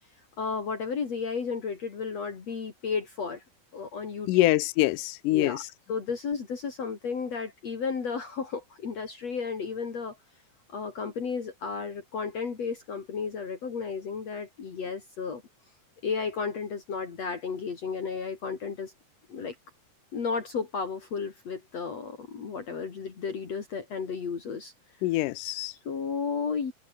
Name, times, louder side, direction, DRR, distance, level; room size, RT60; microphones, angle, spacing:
voice 1, 0.4-3.4 3.7-4.5 5.3-5.6 5.9-10.2 10.7-15.4 16.0-18.9 19.3-19.6 20.1-24.7 25.9-26.7, left 5 dB, 50° left, 4.1 m, -33 dB
voice 2, 4.3-5.6 25.0-25.7, left 18 dB, 80° left, 2.3 m, -24 dB
omnidirectional pair, 3.8 m